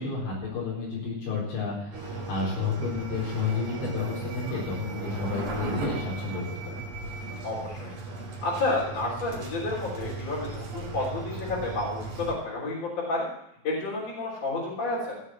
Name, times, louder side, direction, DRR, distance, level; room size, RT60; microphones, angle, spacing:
voice 1, 0.0-6.8, left 4 dB, 75° left, -5 dB, 6.3 m, -31 dB
sound 1, 1.9-12.3, right 3 dB, 45° right, 3.8 m, -36 dB
voice 2, 7.4-8.0 8.4-12.0 12.3-13.3 13.6-15.1, left 2 dB, 35° left, -6 dB, 4.4 m, -30 dB
16.0 x 7.4 x 7.6 m, 0.75 s
omnidirectional pair, 5.3 m